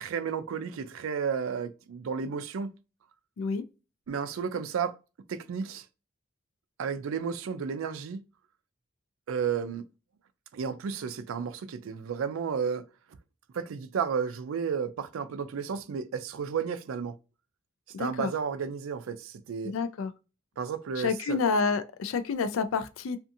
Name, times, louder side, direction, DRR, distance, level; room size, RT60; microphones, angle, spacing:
voice 1, 0.0-2.8 4.1-4.9 5.3-5.8 6.8-8.2 9.3-9.8 10.5-12.8 13.5-17.2 18.0-19.7 20.6-21.4, right 6 dB, 90° right, 0.4 m, -32 dB
voice 2, 17.9-18.3 19.6-20.1 21.0-23.2, left 5 dB, 85° left, 0.4 m, -29 dB
2.6 x 2.4 x 2.4 m
head